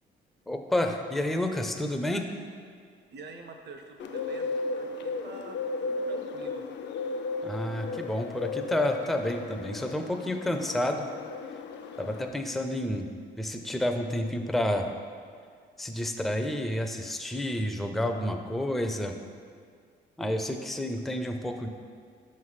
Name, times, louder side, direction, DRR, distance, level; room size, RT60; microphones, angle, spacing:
voice 1, 0.5-2.3 7.4-11.1 12.0-13.1 13.4-14.9 15.8-19.1 20.2-21.7, left 1 dB, ahead, 5 dB, 0.4 m, -30 dB
voice 2, 3.1-6.6 20.7-20.9, right 3 dB, 60° right, 5 dB, 0.7 m, -47 dB
Bird, 4.0-12.3, left 3 dB, 65° left, 0.4 m, -35 dB
5.5 x 3.2 x 5.6 m, 2.1 s
cardioid pair, 90°, 20 cm